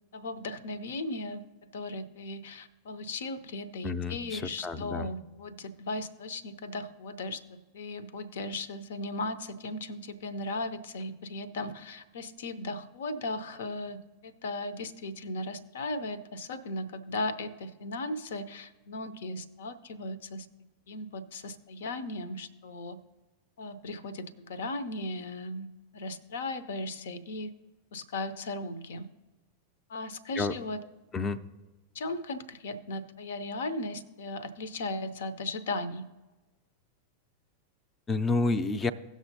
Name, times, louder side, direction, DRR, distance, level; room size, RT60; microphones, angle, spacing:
voice 1, 0.1-20.5 20.9-23.0 23.6-27.5 27.9-29.1 29.9-30.8 31.9-36.0, left 2 dB, 60° left, 15 dB, 0.7 m, -37 dB
voice 2, 3.8-5.1 30.4-30.5 31.1-31.5 38.1-38.9, left 3 dB, 20° left, 13 dB, 0.5 m, -29 dB
17.5 x 6.2 x 2.7 m, 1.2 s
figure-of-eight pair, 90°, 0 cm